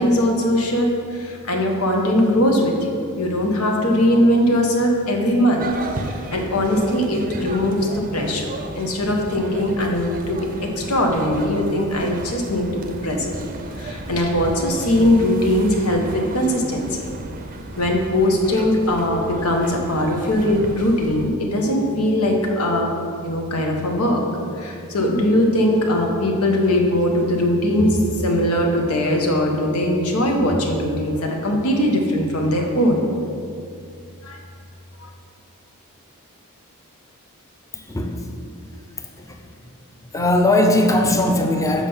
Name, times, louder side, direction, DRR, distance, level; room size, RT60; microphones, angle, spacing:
voice 1, 0.0-5.7 6.0-8.5 8.8-10.5 10.7-13.3 13.8-17.1 17.8-22.9 23.2-24.2 24.6-33.1 34.2-34.4 35.0-35.1, left 1 dB, 85° left, 1 dB, 1.2 m, -20 dB
sound 1, 5.6-21.3, right 2 dB, 40° right, 0.5 m, -34 dB
voice 2, 37.7-38.2 39.1-39.4 40.1-41.9, left 1 dB, 15° left, 3 dB, 0.6 m, -19 dB
7.5 x 5.0 x 5.5 m, 2.4 s
head